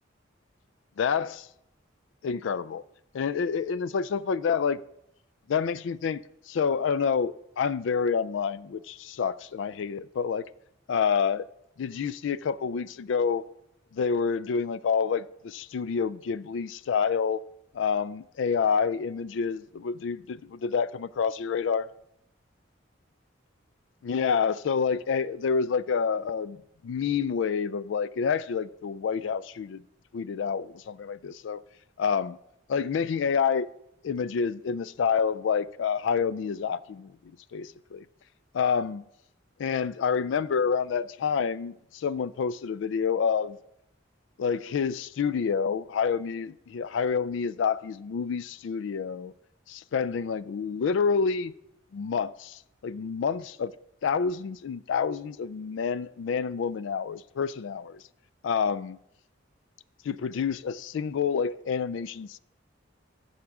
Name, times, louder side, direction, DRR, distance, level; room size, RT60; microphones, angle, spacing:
voice 1, 1.0-1.5 2.2-2.8 3.1-4.8 5.5-6.2 6.5-10.4 10.9-11.5 11.8-13.4 13.9-17.4 17.7-21.9 24.0-29.8 30.1-31.6 32.0-32.4 32.7-33.7 34.0-38.1 38.5-39.0 39.6-43.6 44.4-49.3 49.7-51.5 51.9-53.7 54.0-58.0 58.4-59.0 60.0-62.4, left 6 dB, 70° left, 0.3 m, -28 dB
12.5 x 7.1 x 3.6 m
head